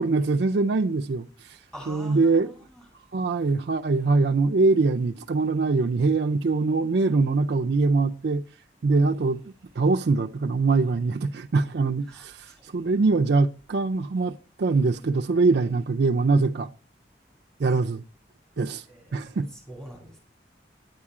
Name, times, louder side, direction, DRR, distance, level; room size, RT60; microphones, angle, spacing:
voice 1, 0.0-1.6 1.9-2.5 3.1-8.4 8.8-9.4 9.8-16.7 17.6-18.0 18.6-18.8 19.1-19.5, right 3 dB, 65° right, 0.4 m, -23 dB
voice 2, 1.7-2.8 12.1-12.3 17.7-17.8 18.9-19.4 19.7-20.2, right 1 dB, 5° left, 2.2 m, -44 dB
9.4 x 8.5 x 4.8 m
head